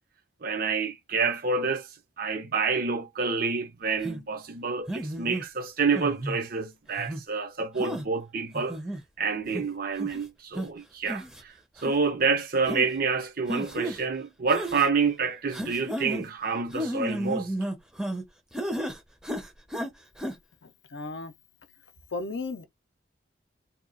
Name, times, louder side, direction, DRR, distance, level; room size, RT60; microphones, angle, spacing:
voice 1, 0.4-1.9 2.2-8.8 9.2-11.5 11.8-17.5, right 4 dB, 50° right, 0.7 m, -28 dB
sound 1, 4.0-4.2 4.9-5.4 6.0-6.4 7.0-7.2 7.8-8.1 8.5-9.0 9.5-9.6 10.0-10.2 10.6-10.7 11.1-11.4 11.8-11.9 12.7-12.9 13.5-14.0 14.5-14.9 15.5-16.3 16.7-18.2 18.5-19.0 19.2-19.9 20.2-20.3, right 1 dB, 5° right, 0.6 m, -32 dB
voice 2, 20.9-21.3 22.1-22.6, left 3 dB, 60° left, 0.5 m, -34 dB
2.8 x 2.3 x 3.7 m
head